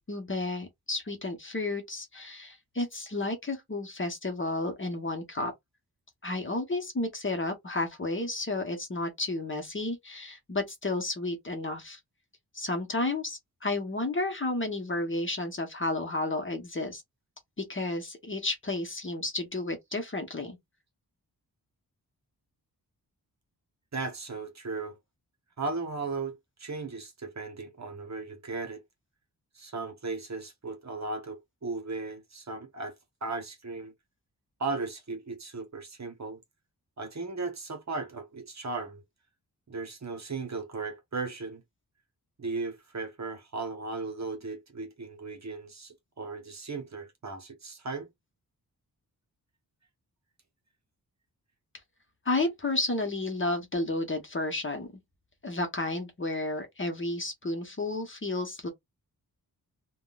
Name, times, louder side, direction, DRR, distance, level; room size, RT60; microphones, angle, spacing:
voice 1, 0.1-5.5 6.2-12.0 12.5-17.0 17.6-20.6 52.2-54.9 55.4-58.7, left 2 dB, 30° left, 0.9 m, -32 dB
voice 2, 23.9-25.0 25.6-28.8 29.5-32.9 33.2-33.9 34.6-36.4 37.0-39.0 39.7-41.6 42.4-48.1, right 3 dB, 45° right, 0.9 m, -36 dB
3.5 x 2.2 x 2.3 m
wide cardioid pair, 125°, 38 cm